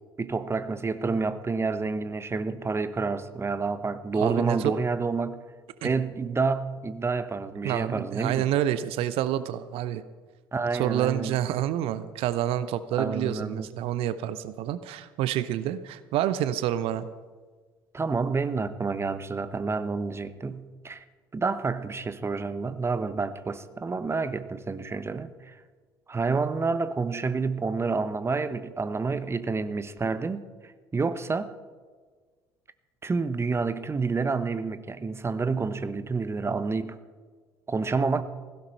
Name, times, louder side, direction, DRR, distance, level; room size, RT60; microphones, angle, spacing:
voice 1, 0.2-5.4 5.8-8.5 10.5-11.4 13.0-13.7 17.9-21.0 21.3-25.5 26.1-31.5 33.0-37.0 37.7-38.2, right 4 dB, 20° right, 12 dB, 1.1 m, -29 dB
voice 2, 4.2-4.7 5.8-5.9 7.6-10.0 10.7-17.1, right 12 dB, 55° right, 14 dB, 0.8 m, -28 dB
17.0 x 16.0 x 4.4 m, 1.5 s
figure-of-eight pair, 55°, 11 cm